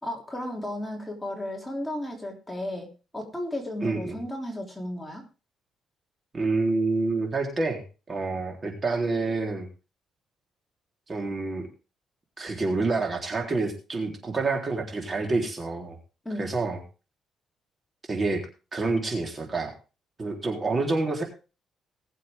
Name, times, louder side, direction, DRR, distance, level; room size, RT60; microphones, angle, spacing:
voice 1, 0.0-5.3 16.2-16.5, left 1 dB, 10° left, 1 dB, 3.2 m, -34 dB
voice 2, 3.8-4.2 6.3-7.8 8.1-9.7 11.1-11.6 12.4-16.0 16.4-16.8 18.1-18.4 18.7-19.7 20.2-21.2, right 3 dB, 30° right, 2 dB, 3.7 m, -27 dB
20.5 x 7.5 x 3.6 m, 0.33 s
cardioid pair, 110°, 0 cm